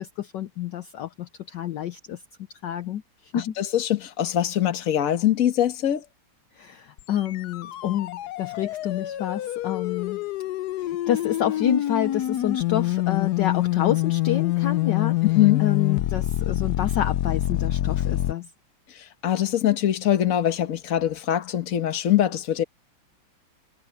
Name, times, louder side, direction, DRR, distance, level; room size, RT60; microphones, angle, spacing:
voice 1, 0.0-2.2 2.6-3.5 6.6-10.2 10.8-15.2 15.6-18.5, left 10 dB, 65° left, 1.3 m, -28 dB
voice 2, 3.3-6.0 15.3-15.6 19.2-22.6, left 11 dB, 45° left, 1.5 m, -23 dB
sound 1, 7.0-18.3, left 15 dB, 80° left, 0.8 m, -26 dB
omnidirectional pair, 2.4 m